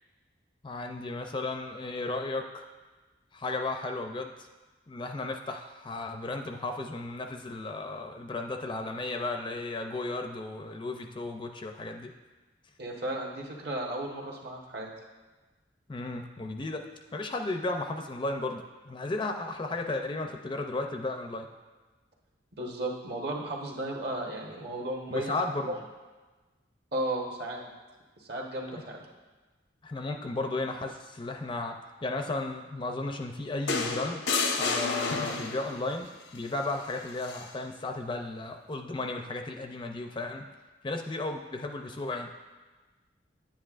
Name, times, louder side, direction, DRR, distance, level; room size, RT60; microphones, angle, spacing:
voice 1, 0.6-2.6 3.3-4.5 4.9-12.1 15.9-16.9 17.1-21.5 25.1-25.7 28.7-28.8 29.8-34.3 34.6-40.5 40.8-42.3, left 2 dB, 25° left, 4 dB, 0.4 m, -34 dB
voice 2, 12.8-14.9 22.6-25.4 25.7-25.8 26.9-27.7 28.2-29.0, right 1 dB, 60° right, -1 dB, 1.2 m, -34 dB
sound 1, 33.7-35.8 37.2-37.4, left 4 dB, 90° left, 0.7 m, -30 dB
9.6 x 8.8 x 2.5 m, 1.3 s
head